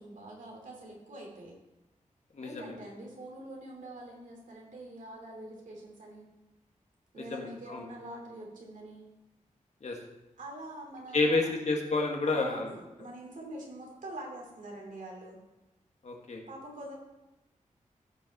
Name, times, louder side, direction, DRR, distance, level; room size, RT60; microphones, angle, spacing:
voice 1, 0.0-1.6 2.4-6.3 7.1-9.1 10.4-11.5 12.2-15.4 16.5-17.0, right 1 dB, 80° right, -1 dB, 2.7 m, -45 dB
voice 2, 2.3-2.7 7.2-7.8 9.8-10.0 11.1-12.7 16.0-16.4, left 3 dB, 60° left, 1 dB, 1.6 m, -30 dB
15.0 x 5.5 x 4.1 m, 0.98 s
wide cardioid pair, 130°, 13 cm